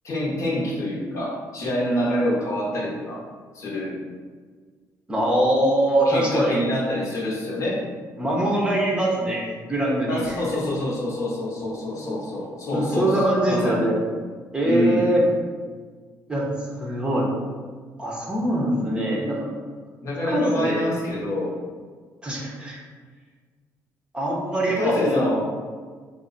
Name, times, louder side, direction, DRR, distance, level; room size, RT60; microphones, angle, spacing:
voice 1, 0.0-3.2 3.5-4.0 6.1-7.8 10.1-13.2 13.5-13.9 14.6-15.1 20.0-21.6 24.8-25.4, left 1 dB, 50° left, -4 dB, 0.9 m, -26 dB
voice 2, 5.1-6.5 8.2-10.4 11.9-12.1 12.7-14.0 14.5-15.3 16.3-16.5 16.8-17.3 18.0-19.5 20.3-20.8 22.2-22.8 24.1-25.2, right 1 dB, 15° right, -3 dB, 0.7 m, -23 dB
3.1 x 2.0 x 3.9 m, 1.5 s
cardioid pair, 110°, 7 cm